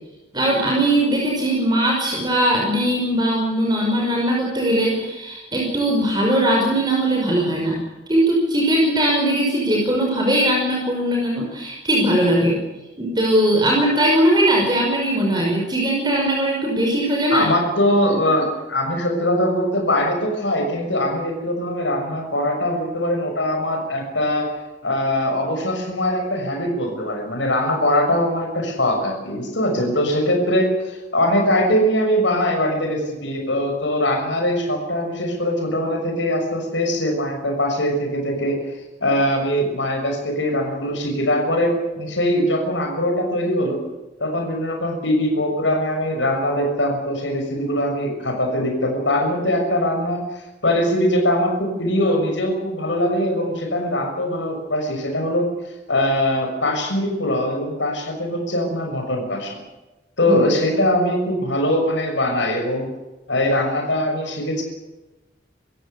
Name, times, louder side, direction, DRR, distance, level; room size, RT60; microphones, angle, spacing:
voice 1, 0.3-7.8 8.1-12.6 13.0-17.5 60.3-60.4, right 1 dB, 25° right, -1 dB, 5.6 m, -20 dB
voice 2, 17.3-24.5 24.8-38.6 39.0-43.8 44.2-55.4 55.9-59.6 60.2-62.9 63.3-64.6, left 1 dB, 80° left, 2 dB, 6.5 m, -22 dB
26.0 x 16.5 x 8.5 m, 1.1 s
head